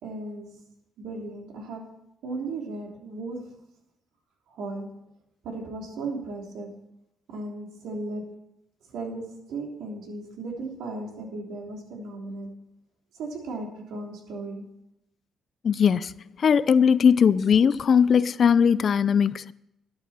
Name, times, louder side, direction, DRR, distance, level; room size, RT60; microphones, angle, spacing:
voice 1, 0.0-0.6 1.0-2.0 2.2-3.5 4.5-5.0 5.4-6.8 7.3-8.4 8.9-12.6 13.1-14.7, right 2 dB, 85° right, 3.2 m, -36 dB
voice 2, 15.6-19.5, left 7 dB, 50° left, 0.5 m, -20 dB
12.0 x 9.8 x 4.3 m
cardioid pair, 90°, 0 cm